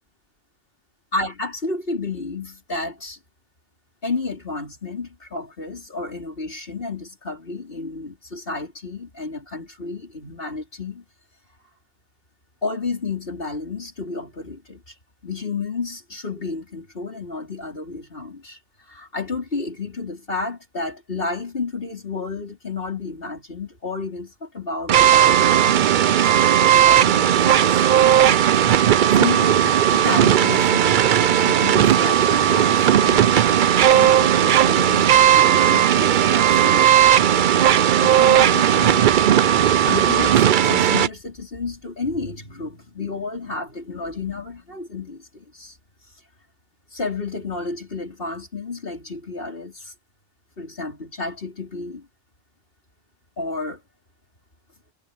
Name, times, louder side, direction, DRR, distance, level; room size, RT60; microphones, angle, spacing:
voice 1, 1.1-3.2 4.0-11.0 12.6-14.9 15.2-18.6 18.9-26.2 26.6-27.9 29.1-33.4 33.7-37.1 38.0-39.5 39.8-45.8 46.9-49.9 50.6-52.1 53.4-53.8, left 3 dB, 65° left, 4.6 m, -31 dB
sound 1, 24.9-41.1, right 10 dB, 60° right, 0.7 m, -16 dB
omnidirectional pair, 1.0 m